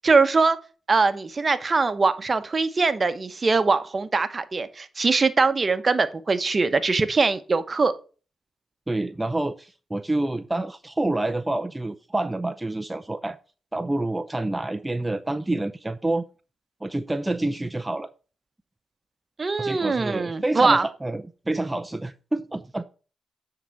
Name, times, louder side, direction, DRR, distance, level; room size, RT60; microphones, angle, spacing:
voice 1, 0.0-0.6 0.9-7.9 19.4-20.8, right 4 dB, 40° right, 1.0 m, -22 dB
voice 2, 8.9-13.4 13.7-16.2 16.8-18.1 19.6-22.8, right 2 dB, 15° right, 0.6 m, -28 dB
9.2 x 3.9 x 5.8 m
supercardioid pair, 50°, 0 cm